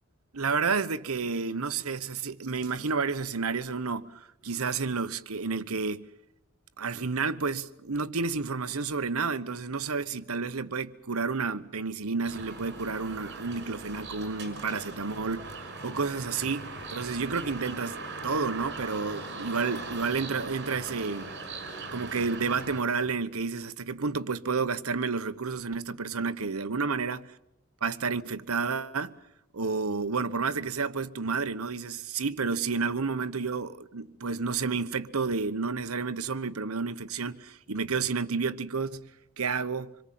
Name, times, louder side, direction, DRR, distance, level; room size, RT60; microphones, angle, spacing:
voice 1, 0.3-6.1 6.8-18.0 18.2-21.3 21.9-27.2 27.8-29.1 29.5-39.9, right 4 dB, 85° right, 1.1 m, -30 dB
sound 1, 12.2-22.8, right 3 dB, 55° right, 6.0 m, -40 dB
26.5 x 23.0 x 7.7 m
head